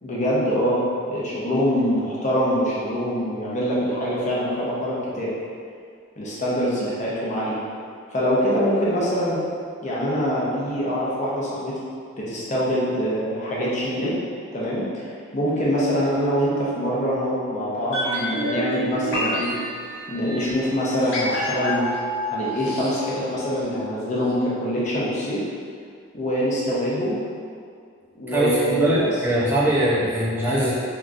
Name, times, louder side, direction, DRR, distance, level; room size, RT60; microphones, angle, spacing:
voice 1, 0.0-5.3 6.2-7.6 8.1-9.4 9.8-11.7 12.1-14.2 14.5-15.1 15.3-19.6 20.1-21.9 22.3-25.4 26.1-27.2 28.2-29.1, equal, 35° left, -7 dB, 0.7 m, -24 dB
sound 1, 17.9-24.0 24.2-24.3, equal, 65° left, 1.1 m, -28 dB
voice 2, 28.3-30.7, right 1 dB, 10° right, -8 dB, 0.5 m, -21 dB
3.5 x 2.8 x 2.5 m, 2.2 s
head